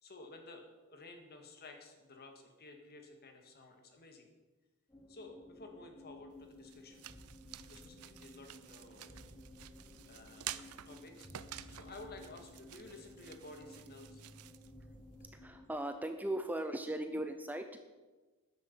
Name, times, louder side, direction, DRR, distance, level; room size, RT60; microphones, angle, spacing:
voice 1, 0.0-4.3 5.1-7.1 7.7-9.4 10.1-11.3 11.7-14.3, left 2 dB, 45° left, 4 dB, 2.0 m, -53 dB
sound 1, 4.9-15.7, left 1 dB, 15° left, 1.4 m, -55 dB
sound 2, 6.3-15.3, right 12 dB, 75° right, 0.6 m, -51 dB
voice 2, 15.3-17.8, right 1 dB, 10° right, 7 dB, 0.6 m, -38 dB
12.5 x 10.0 x 5.7 m, 1.2 s
head